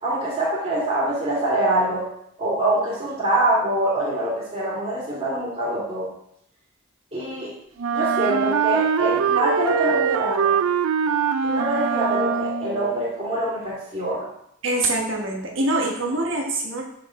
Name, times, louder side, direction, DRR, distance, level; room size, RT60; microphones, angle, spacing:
voice 1, 0.0-2.1 2.4-6.1 7.1-7.5 7.9-10.6 11.4-14.3, right 1 dB, 30° right, -8 dB, 2.3 m, -24 dB
Wind instrument woodwind instrument, 7.8-12.8, right 7 dB, 80° right, 0.4 m, -23 dB
voice 2, 14.6-16.8, right 2 dB, 60° right, 0 dB, 1.4 m, -24 dB
7.2 x 5.0 x 3.7 m, 0.74 s
head